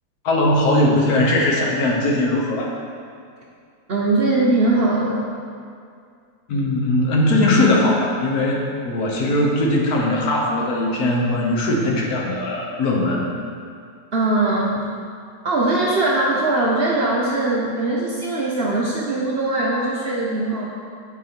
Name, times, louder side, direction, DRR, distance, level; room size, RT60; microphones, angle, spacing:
voice 1, 0.2-2.7 6.5-13.2, left 1 dB, 65° left, -2 dB, 1.4 m, -19 dB
voice 2, 3.9-5.3 14.1-14.8 15.4-20.7, right 2 dB, 55° right, -4 dB, 0.6 m, -20 dB
8.2 x 4.1 x 4.4 m, 2.3 s
omnidirectional pair, 1.8 m